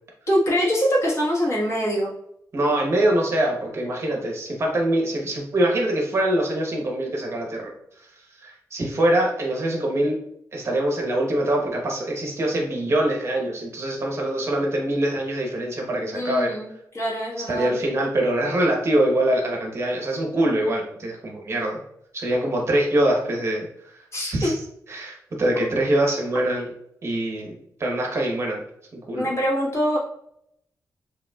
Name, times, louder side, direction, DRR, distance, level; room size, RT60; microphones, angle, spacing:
voice 1, 0.3-2.1 16.1-16.7 16.9-17.7 24.1-24.5 29.2-30.0, equal, 45° left, -4 dB, 1.4 m, -23 dB
voice 2, 2.5-7.7 8.4-10.2 10.5-16.5 17.5-21.8 22.1-24.0 24.3-24.5 24.9-26.7 27.0-28.6 28.9-29.3, right 1 dB, 40° right, 0 dB, 1.0 m, -24 dB
6.8 x 2.7 x 2.3 m, 0.73 s
wide cardioid pair, 165°, 7 cm